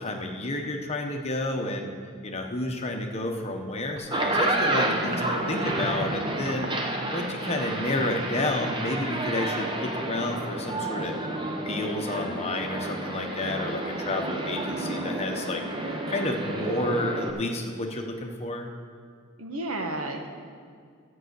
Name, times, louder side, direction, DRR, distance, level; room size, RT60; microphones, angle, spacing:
voice 1, 0.0-1.9 2.2-6.7 7.1-11.1 11.7-15.6 16.1-18.7, left 1 dB, 30° left, 3 dB, 1.0 m, -30 dB
sound 1, 4.0-17.3, right 1 dB, 20° right, 0.9 m, -30 dB
voice 2, 5.1-5.7 19.4-20.3, right 2 dB, 75° right, 3 dB, 1.3 m, -33 dB
13.0 x 5.6 x 8.1 m, 2.1 s
head